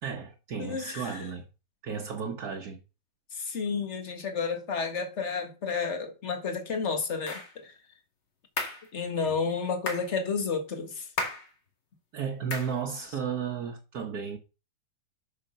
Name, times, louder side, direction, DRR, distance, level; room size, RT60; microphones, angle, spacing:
voice 1, 0.0-1.5 1.8-2.8 9.2-9.4 12.1-14.4, right 6 dB, 55° right, 1.6 m, -34 dB
voice 2, 0.6-1.3 3.3-7.7 8.9-11.1 13.1-13.2, left 5 dB, 40° left, 1.8 m, -31 dB
sound 1, 7.3-7.5 8.6-8.9 9.9-10.1 11.2-11.5 12.5-12.8, left 3 dB, 65° left, 2.9 m, -33 dB
8.5 x 6.4 x 5.5 m
omnidirectional pair, 2.1 m